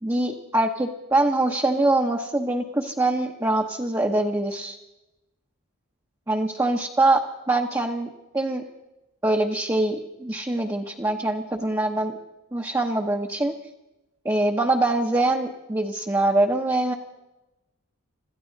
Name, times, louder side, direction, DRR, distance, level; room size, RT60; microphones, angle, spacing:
voice 1, 0.0-4.8 6.3-7.2 7.5-8.1 8.3-8.6 9.2-12.2 12.5-13.5 14.2-16.9, right 2 dB, 15° right, 1 dB, 0.9 m, -23 dB
25.5 x 14.0 x 4.0 m, 0.97 s
head